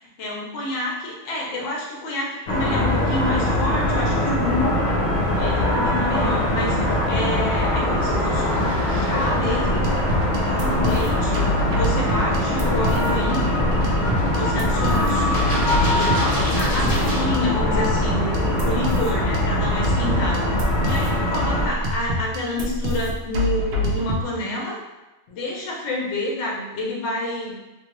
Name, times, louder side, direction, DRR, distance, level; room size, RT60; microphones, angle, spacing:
voice 1, 0.0-4.8 5.4-8.6 8.9-9.9 10.4-13.4 14.3-24.8 25.3-27.6, left 2 dB, 60° left, -2 dB, 0.9 m, -28 dB
sound 1, 2.5-21.7, left 1 dB, 85° left, 0.4 m, -22 dB
sound 2, 6.5-17.2, equal, 10° left, 0.9 m, -33 dB
sound 3, 9.5-24.2, equal, 65° right, 0.7 m, -27 dB
2.6 x 2.3 x 2.9 m, 1.1 s
omnidirectional pair, 1.5 m